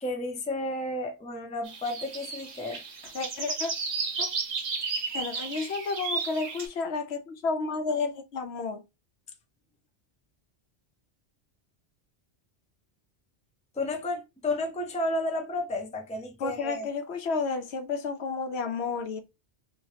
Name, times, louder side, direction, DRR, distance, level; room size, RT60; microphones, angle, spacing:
voice 1, 0.0-2.8 13.7-16.9, left 1 dB, 10° left, 0.5 m, -32 dB
sound 1, 1.6-6.7, right 4 dB, 85° right, 1.3 m, -33 dB
voice 2, 3.1-3.7 4.2-4.3 5.1-8.8 16.4-19.2, left 4 dB, 75° left, 0.9 m, -31 dB
3.1 x 2.7 x 3.2 m
omnidirectional pair, 1.1 m